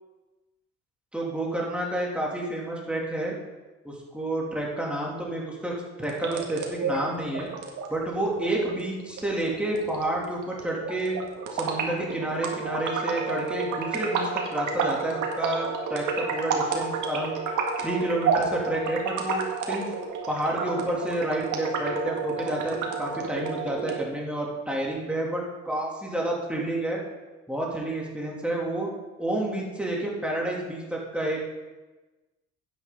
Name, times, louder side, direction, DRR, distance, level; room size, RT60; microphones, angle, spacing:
voice 1, 1.1-3.3 3.8-7.5 7.9-11.2 11.5-17.4 17.8-19.9 20.3-27.0 27.5-28.9 29.2-31.4, right 1 dB, 5° right, -3 dB, 2.9 m, -30 dB
sound 1, 6.0-24.0, right 4 dB, 80° right, 1.8 m, -31 dB
10.5 x 9.2 x 4.0 m, 1.2 s
cardioid pair, 90°, 30 cm